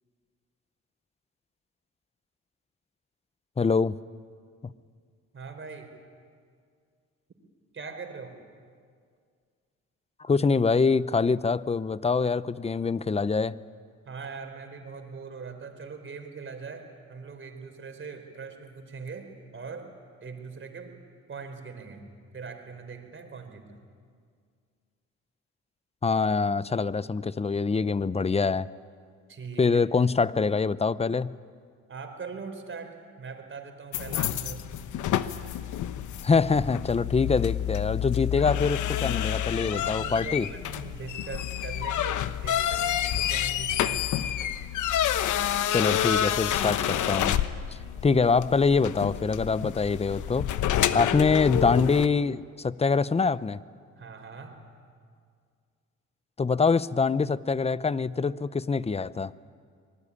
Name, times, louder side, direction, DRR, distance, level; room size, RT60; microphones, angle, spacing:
voice 1, 3.6-4.0 10.2-13.5 26.0-28.7 29.6-31.3 36.2-40.5 45.7-47.4 48.0-50.5 50.9-53.6 56.4-59.3, left 4 dB, 20° left, 17 dB, 0.7 m, -24 dB
voice 2, 5.3-5.9 7.7-8.4 14.0-19.9 20.2-21.0 21.3-22.1 22.3-23.8 29.3-29.8 31.9-34.6 39.9-44.1 48.1-48.2 54.0-54.7, right 5 dB, 40° right, 6 dB, 4.5 m, -41 dB
sound 1, 33.9-52.1, left 11 dB, 80° left, 1.1 m, -29 dB
25.5 x 20.5 x 10.0 m, 2.1 s
cardioid pair, 90°, 30 cm